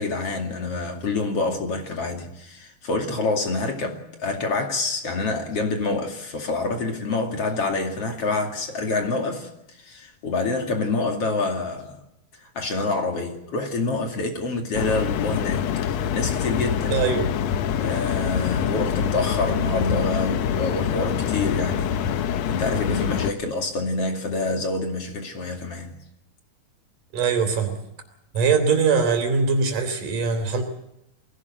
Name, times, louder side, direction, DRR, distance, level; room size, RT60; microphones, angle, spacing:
voice 1, 0.0-12.0 12.3-16.9 17.8-22.0 22.5-25.9, left 3 dB, 50° left, 3.3 m, -27 dB
sound 1, 14.7-23.3, left 8 dB, 65° left, 1.9 m, -25 dB
voice 2, 16.9-17.3 27.1-27.8 28.3-30.6, right 5 dB, 75° right, 4.9 m, -22 dB
22.5 x 17.0 x 8.0 m
omnidirectional pair, 3.7 m